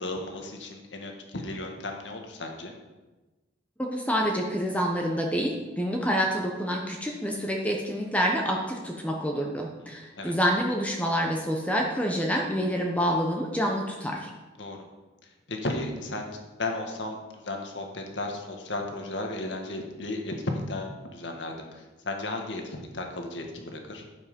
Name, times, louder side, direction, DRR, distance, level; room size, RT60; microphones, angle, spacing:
voice 1, 0.0-2.7 10.1-10.3 14.6-14.8 15.5-24.1, left 2 dB, 75° left, 3 dB, 1.7 m, -34 dB
voice 2, 3.8-14.3, equal, 10° left, 0 dB, 1.1 m, -27 dB
11.0 x 7.6 x 5.4 m, 1.2 s
head